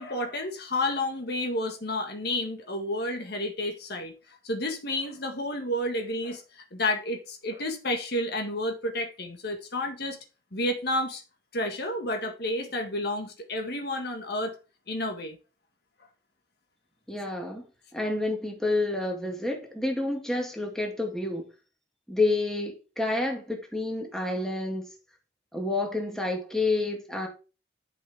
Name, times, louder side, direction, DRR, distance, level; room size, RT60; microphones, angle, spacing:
voice 1, 0.0-10.2 10.5-11.2 11.5-14.6 14.9-15.4, left 1 dB, 60° left, 1.7 m, -31 dB
voice 2, 17.1-17.7 17.9-21.4 22.1-24.8 25.5-27.3, left 2 dB, 5° left, 2.2 m, -29 dB
11.5 x 5.8 x 3.6 m
head